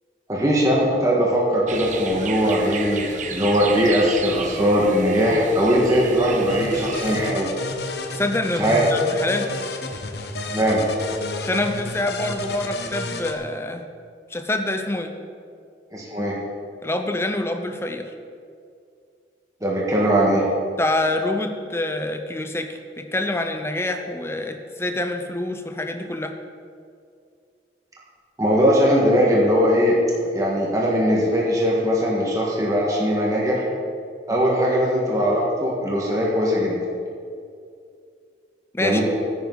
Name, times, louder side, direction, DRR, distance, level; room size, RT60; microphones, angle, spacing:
voice 1, 0.3-7.5 8.5-8.8 10.5-10.8 15.9-16.4 19.6-20.5 28.4-30.0 30.3-33.6 34.3-36.9 38.8-39.0, equal, 20° right, -4 dB, 1.6 m, -20 dB
sound 1, 1.7-7.3, right 5 dB, 45° right, 0.9 m, -33 dB
sound 2, 6.5-13.3, left 2 dB, 65° left, 1.0 m, -31 dB
voice 2, 8.1-9.5 11.4-13.8 14.3-15.1 16.8-18.1 20.8-26.3 38.7-39.0, left 2 dB, 15° left, 6 dB, 0.7 m, -26 dB
15.5 x 9.6 x 4.0 m, 2.3 s
head